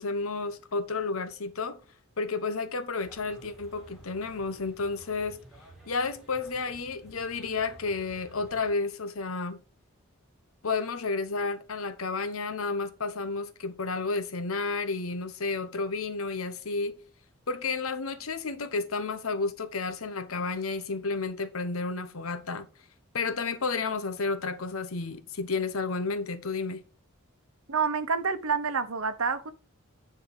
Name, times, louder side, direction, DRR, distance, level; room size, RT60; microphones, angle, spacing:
voice 1, 0.0-1.8 2.2-5.4 5.9-9.6 10.6-17.0 17.5-22.7 23.1-26.8, left 4 dB, 80° left, 1.0 m, -31 dB
sound 1, 3.0-8.7, right 1 dB, ahead, 2.4 m, -53 dB
voice 2, 27.7-29.5, right 5 dB, 80° right, 1.0 m, -28 dB
9.9 x 3.6 x 6.0 m
head